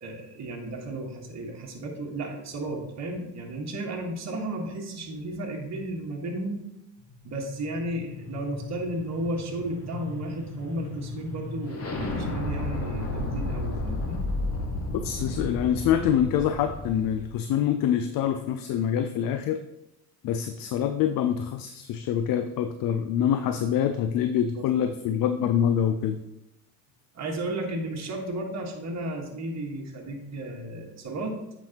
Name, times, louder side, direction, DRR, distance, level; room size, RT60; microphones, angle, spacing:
voice 1, 0.0-6.6 7.2-14.2 23.9-24.1 24.5-24.9 27.1-31.4, right 1 dB, 35° right, 0 dB, 1.7 m, -34 dB
sound 1, 7.1-17.3, left 2 dB, 30° left, 1.6 m, -33 dB
voice 2, 15.0-19.6 20.2-26.2, left 9 dB, 45° left, 9 dB, 0.6 m, -25 dB
8.4 x 5.3 x 3.0 m, 0.87 s
hypercardioid pair, 65°, 47 cm